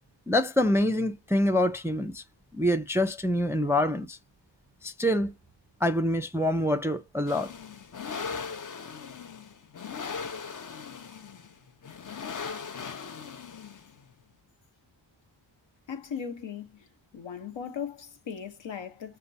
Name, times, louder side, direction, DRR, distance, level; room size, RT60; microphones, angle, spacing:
voice 1, 0.3-2.2 2.5-4.2 4.8-5.3 5.8-7.5, left 1 dB, 5° right, 0.4 m, -26 dB
sound 1, 7.3-14.0, left 5 dB, 40° left, 0.6 m, -39 dB
voice 2, 15.9-16.9 17.1-19.2, left 7 dB, 65° left, 1.0 m, -38 dB
6.5 x 2.2 x 2.6 m
wide cardioid pair, 75°, 48 cm